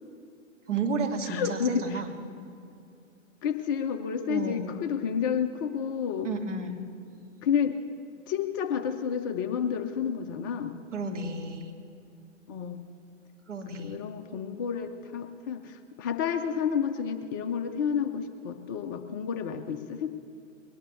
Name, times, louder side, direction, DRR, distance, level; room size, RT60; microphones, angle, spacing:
voice 1, 0.7-2.1 4.3-4.7 6.2-6.8 10.9-11.7 13.5-14.0, right 3 dB, 70° right, 3 dB, 2.0 m, -32 dB
voice 2, 1.3-2.0 3.4-6.3 7.4-7.8 8.3-10.8 12.5-12.8 13.8-20.1, left 7 dB, 15° left, 7 dB, 0.4 m, -30 dB
21.5 x 18.0 x 3.1 m, 2.5 s
figure-of-eight pair, 120°, 38 cm